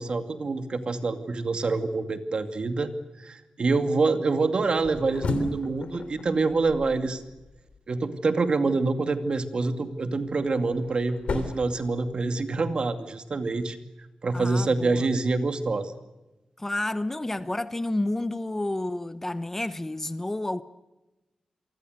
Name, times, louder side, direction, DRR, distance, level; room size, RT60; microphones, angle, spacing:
voice 1, 0.0-2.9 3.2-7.2 7.9-13.8 14.2-15.9, right 3 dB, 50° right, 2.4 m, -26 dB
sound 1, 4.6-7.8 10.0-12.6, left 4 dB, 65° left, 3.4 m, -36 dB
voice 2, 14.3-15.1 16.6-20.6, left 1 dB, 15° left, 1.0 m, -30 dB
28.5 x 24.0 x 6.6 m
wide cardioid pair, 115°, 2 cm